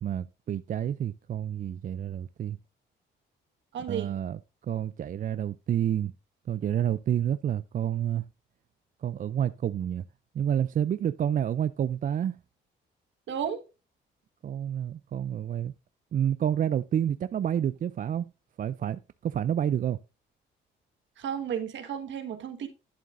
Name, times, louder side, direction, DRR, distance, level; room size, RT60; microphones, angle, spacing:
voice 1, 0.0-2.6 3.9-4.4 4.7-6.1 6.5-8.2 9.0-10.0 10.3-12.4 14.4-15.7 16.1-18.3 18.6-20.0, right 9 dB, 45° right, 0.4 m, -29 dB
voice 2, 3.7-4.1 13.3-13.6 21.2-22.7, right 8 dB, 70° right, 1.5 m, -33 dB
11.5 x 7.2 x 2.5 m
cardioid pair, 90°, 20 cm